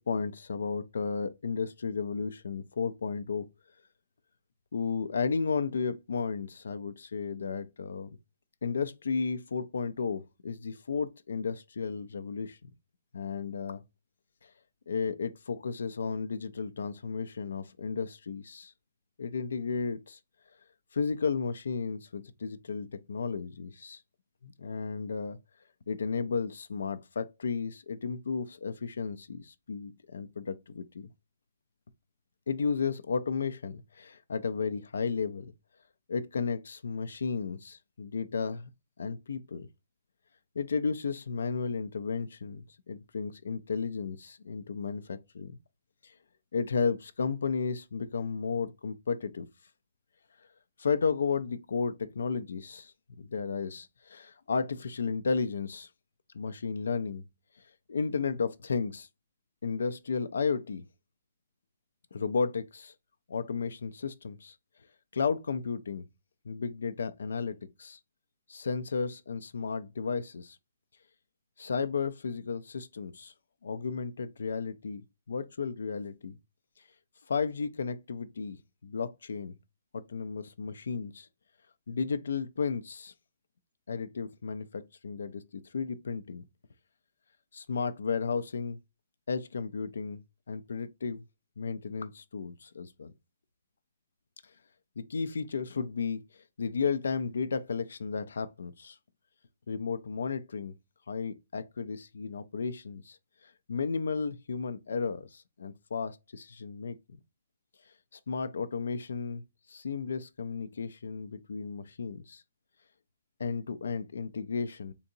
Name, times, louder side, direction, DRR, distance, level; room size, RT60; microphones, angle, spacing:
voice 1, 0.0-3.5 4.7-8.1 8.6-12.6 13.1-13.8 14.4-14.5 14.9-18.7 19.2-20.2 20.9-24.0 24.4-25.4 25.9-31.1 32.5-35.5 36.1-38.7 39.0-39.7 40.6-45.6 46.0-46.1 46.5-49.5 50.8-55.9 56.3-57.2 57.9-59.1 59.6-60.8 62.1-62.9 63.3-64.5 65.1-66.0 66.5-68.0 68.5-70.6 71.6-73.3 73.6-76.4 77.3-78.6 78.8-79.5 79.9-81.3 81.9-83.1 83.9-85.4 85.7-86.4 87.5-88.8 89.3-90.2 90.5-91.2 91.6-93.1 95.0-96.2 96.6-99.0 99.7-100.7 101.1-103.2 103.7-107.0 108.1-109.4 109.7-112.4 113.4-114.9, left 5 dB, 80° left, 0.4 m, -33 dB
3.7 x 2.7 x 2.5 m
hypercardioid pair, 170°, 0 cm